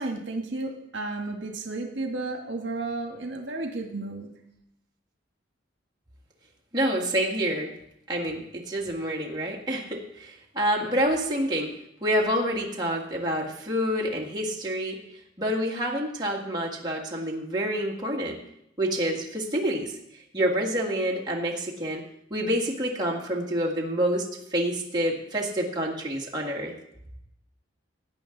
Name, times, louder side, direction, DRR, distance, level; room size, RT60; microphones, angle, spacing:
voice 1, 0.0-4.3, right 2 dB, 70° right, 3 dB, 1.6 m, -33 dB
voice 2, 6.7-7.7 8.1-11.7 12.0-15.0 15.4-18.4 18.8-19.9 20.3-22.0 22.3-26.7, equal, 20° right, -3 dB, 1.9 m, -27 dB
17.5 x 8.9 x 3.9 m, 0.79 s
head